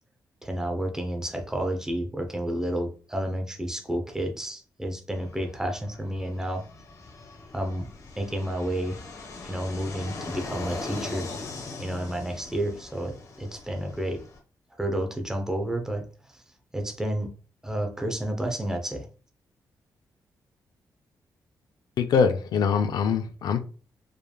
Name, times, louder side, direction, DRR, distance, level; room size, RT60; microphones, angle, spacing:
voice 1, 0.4-6.7 7.5-7.9 8.2-9.0 9.4-11.3 11.8-14.2 14.8-16.1 16.7-17.3 17.6-19.1, right 1 dB, 10° right, 3 dB, 0.8 m, -30 dB
Fixed-wing aircraft airplane, 5.1-14.4, left 3 dB, 55° left, 1.1 m, -40 dB
voice 2, 22.0-23.6, left 6 dB, 80° left, 8 dB, 0.6 m, -23 dB
5.2 x 3.3 x 2.3 m, 0.38 s
wide cardioid pair, 145°, 7 cm